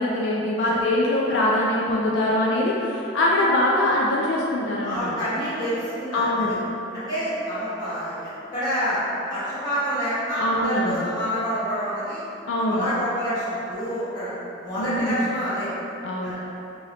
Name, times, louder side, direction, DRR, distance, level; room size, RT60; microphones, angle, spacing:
voice 1, 0.0-5.3 6.1-6.6 10.4-11.0 12.5-12.9 14.8-15.3 16.0-16.4, left 1 dB, 70° left, -3 dB, 0.3 m, -23 dB
voice 2, 4.8-6.6 6.9-9.0 9.3-12.2 12.6-14.3 14.6-15.7 16.2-16.4, equal, 20° left, -14 dB, 1.2 m, -28 dB
2.7 x 2.6 x 3.2 m, 2.9 s
head